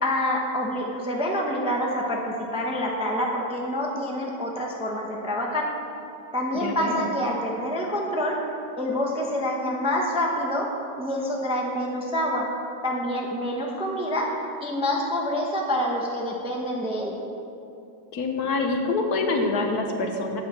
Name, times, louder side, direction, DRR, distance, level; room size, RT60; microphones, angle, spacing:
voice 1, 0.0-5.7 6.3-8.3 8.7-10.7 11.0-12.4 12.8-14.3 14.6-17.2, left 1 dB, 5° right, -1 dB, 0.6 m, -27 dB
voice 2, 6.5-7.1 18.1-20.4, left 3 dB, 70° left, 3 dB, 1.4 m, -26 dB
8.4 x 5.6 x 7.2 m, 2.6 s
omnidirectional pair, 1.8 m